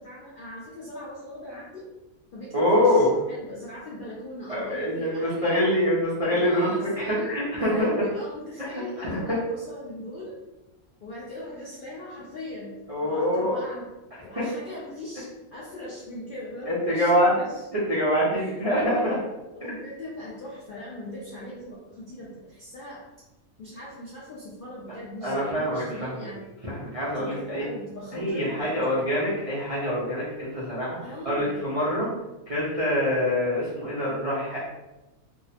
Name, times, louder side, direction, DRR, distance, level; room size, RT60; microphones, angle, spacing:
voice 1, 0.0-1.8 2.3-5.6 6.3-10.4 11.0-12.7 13.0-13.8 14.2-17.6 18.3-18.6 19.5-23.0 23.6-26.5 27.1-29.1 31.0-31.6, left 1 dB, 65° left, -7 dB, 0.5 m, -39 dB
voice 2, 2.5-3.1 4.5-7.9 9.0-9.2 12.9-13.6 14.4-14.5 16.6-17.3 17.7-19.2 25.2-26.2 26.6-27.6 28.1-31.0 31.3-32.1 32.5-34.6, equal, 50° right, -10 dB, 0.4 m, -25 dB
2.6 x 2.0 x 2.7 m, 1.0 s
omnidirectional pair, 1.5 m